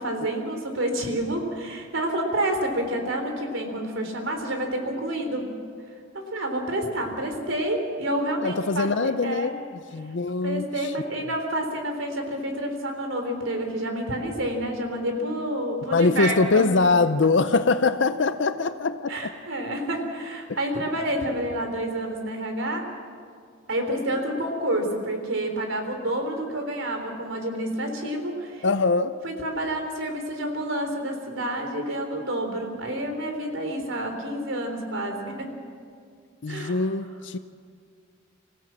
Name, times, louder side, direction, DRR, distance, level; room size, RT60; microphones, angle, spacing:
voice 1, 0.0-5.5 6.1-9.5 10.4-16.6 19.1-22.9 23.7-28.7 29.2-35.5 36.5-36.8, right 1 dB, 80° right, 3.6 m, -29 dB
voice 2, 8.4-9.6 9.9-10.9 15.9-19.3 28.6-29.2 36.4-37.4, left 3 dB, 60° left, 0.6 m, -23 dB
26.0 x 15.5 x 7.5 m
head